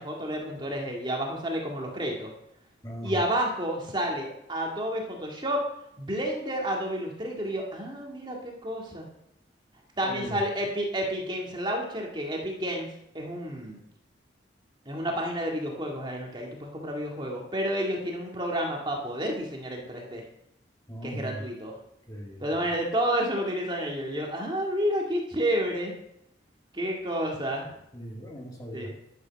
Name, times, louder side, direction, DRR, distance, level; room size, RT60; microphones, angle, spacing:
voice 1, 0.0-2.3 3.0-5.6 6.0-9.1 10.0-12.9 13.1-13.8 14.9-20.2 21.0-21.8 22.4-25.9 26.7-27.7 28.7-28.9, equal, 25° right, -1 dB, 2.0 m, -30 dB
voice 2, 2.8-3.2 10.0-10.4 20.9-21.4 22.1-22.6 27.9-28.9, equal, 20° left, -1 dB, 2.0 m, -38 dB
12.0 x 7.4 x 6.3 m, 0.78 s
head